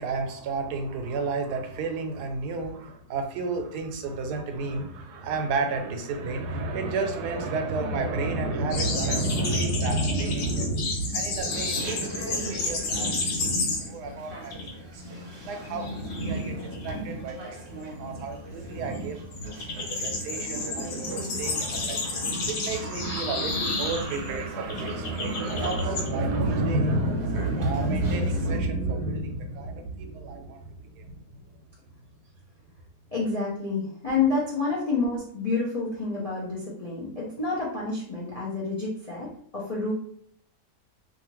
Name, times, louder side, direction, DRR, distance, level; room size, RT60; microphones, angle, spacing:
voice 1, 0.0-19.4 19.7-31.4, right 2 dB, 90° right, 5 dB, 1.1 m, -30 dB
sound 1, 8.7-14.1 14.4-14.7 15.0-26.1, left 2 dB, 90° left, 1.3 m, -31 dB
Chatter, 11.5-28.6, right 1 dB, 60° right, 0.7 m, -40 dB
voice 2, 33.1-39.9, left 4 dB, 55° left, -6 dB, 0.4 m, -29 dB
2.7 x 2.4 x 2.9 m, 0.65 s
omnidirectional pair, 1.7 m